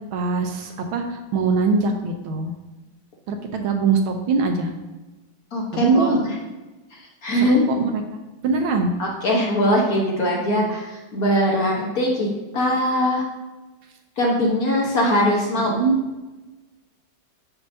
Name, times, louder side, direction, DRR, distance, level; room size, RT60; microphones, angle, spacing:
voice 1, 0.1-2.5 3.3-4.7 5.7-6.2 7.3-8.0 8.4-8.9 10.5-10.7 15.7-16.0, right 4 dB, 75° right, 4 dB, 1.5 m, -22 dB
voice 2, 5.5-6.2 6.9-7.6 9.0-12.3 12.5-13.2 14.2-15.7, equal, 50° left, -2 dB, 1.3 m, -21 dB
6.8 x 6.6 x 2.7 m, 1.1 s
omnidirectional pair, 2.4 m